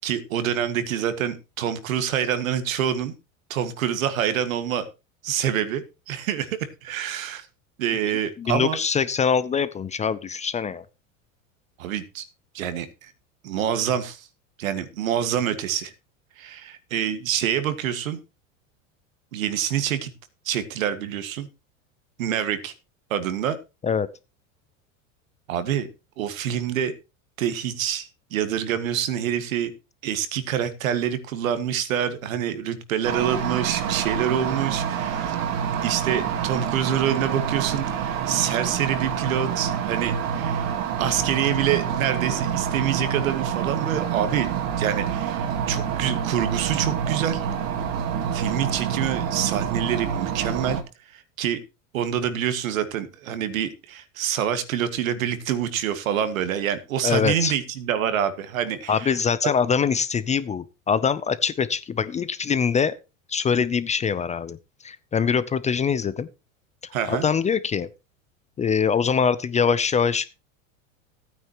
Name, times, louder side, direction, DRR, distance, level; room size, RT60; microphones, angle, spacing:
voice 1, 0.0-3.1 3.5-4.9 5.2-7.5 7.8-8.8 11.8-12.3 12.5-13.1 13.4-14.3 14.6-15.9 16.4-18.2 19.3-20.1 20.5-21.5 22.2-22.7 23.1-23.6 25.5-25.9 26.2-26.9 27.4-29.7 30.0-35.4 35.8-40.7 41.0-44.5 44.8-47.5 48.3-50.8 51.1-51.6 51.9-59.2 59.4-59.5 66.9-67.3, right 9 dB, 80° right, 11 dB, 1.8 m, -26 dB
voice 2, 8.4-10.8 23.8-24.1 57.0-57.5 58.9-62.9 63.3-64.6 64.8-66.3 67.1-67.9 68.6-70.3, left 6 dB, 20° left, 16 dB, 0.5 m, -23 dB
sound 1, 33.0-50.8, right 8 dB, 55° right, 2.5 m, -27 dB
14.5 x 9.3 x 3.0 m, 0.27 s
hypercardioid pair, 105°, 40 cm